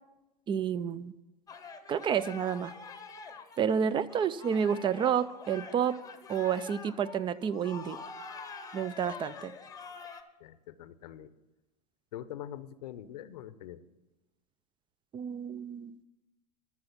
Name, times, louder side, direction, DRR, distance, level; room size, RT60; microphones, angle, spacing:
voice 1, 0.5-1.1 1.9-2.7 3.6-6.0 6.3-8.0 8.7-9.5 15.1-16.0, right 8 dB, 25° right, 19 dB, 0.4 m, -30 dB
sound 1, 1.5-10.2, left 5 dB, 15° left, 0.9 m, -46 dB
voice 2, 10.4-11.3 12.1-13.8, left 11 dB, 70° left, 15 dB, 0.7 m, -44 dB
13.0 x 6.0 x 5.8 m, 1.0 s
hypercardioid pair, 100°, 21 cm